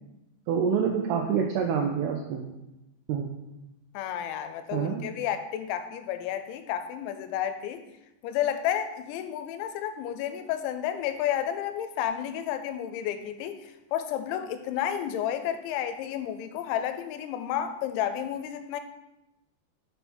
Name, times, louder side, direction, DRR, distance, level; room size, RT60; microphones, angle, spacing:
voice 1, 0.5-2.5 3.1-3.3 4.7-5.1, right 7 dB, 85° right, 2 dB, 2.3 m, -27 dB
voice 2, 3.9-7.8 8.2-18.8, left 10 dB, 85° left, 9 dB, 2.9 m, -31 dB
7.0 x 5.6 x 4.3 m, 0.94 s
omnidirectional pair, 5.2 m